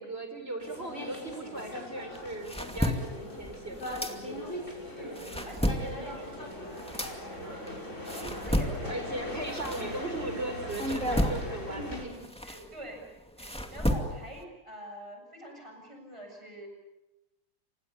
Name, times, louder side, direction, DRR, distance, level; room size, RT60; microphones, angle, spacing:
voice 1, 0.0-4.4 8.9-12.1, right 1 dB, 35° right, 7 dB, 4.9 m, -38 dB
sound 1, 0.6-12.1, equal, 40° left, 7.3 m, -40 dB
sound 2, 2.1-4.7 5.0-10.3 10.7-14.4, equal, 5° left, 2.2 m, -33 dB
voice 2, 4.9-7.6 8.1-9.0 9.8-10.3 11.7-13.1 13.4-16.7, equal, 15° right, 3 dB, 7.3 m, -45 dB
29.5 x 26.0 x 6.9 m, 0.91 s
omnidirectional pair, 1.9 m